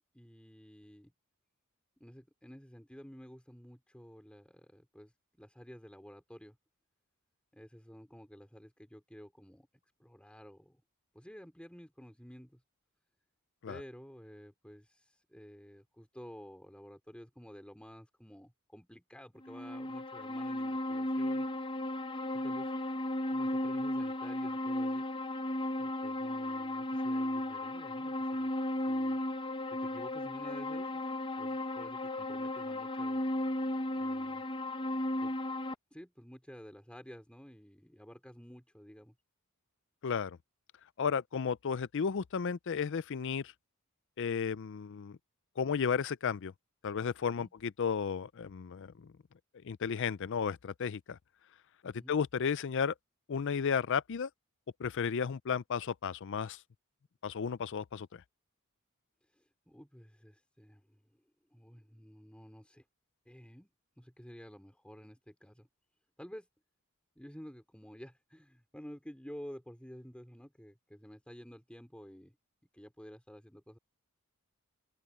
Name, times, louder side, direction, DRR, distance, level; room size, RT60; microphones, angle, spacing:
voice 1, 0.1-1.1 2.0-6.6 7.5-9.7 10.0-10.8 11.1-12.6 13.7-21.5 22.3-22.7 23.3-25.1 25.8-28.5 28.9-29.2 29.7-31.0 31.4-33.2 33.9-34.4 35.2-35.3 35.9-39.1 47.3-47.5 51.9-52.2 59.2-61.2 61.5-62.9 63.3-63.7 64.0-65.7 66.2-66.5 67.2-72.4 72.7-73.8, equal, 5° left, 4.0 m, -52 dB
sound 1, 19.4-35.7, left 1 dB, 25° left, 0.8 m, -35 dB
voice 2, 40.0-40.4 41.0-43.5 44.2-45.2 45.6-46.5 46.8-49.1 49.6-51.2 51.8-52.9 53.3-54.3 54.8-56.6 57.2-58.2, left 6 dB, 55° left, 0.5 m, -33 dB
open air
head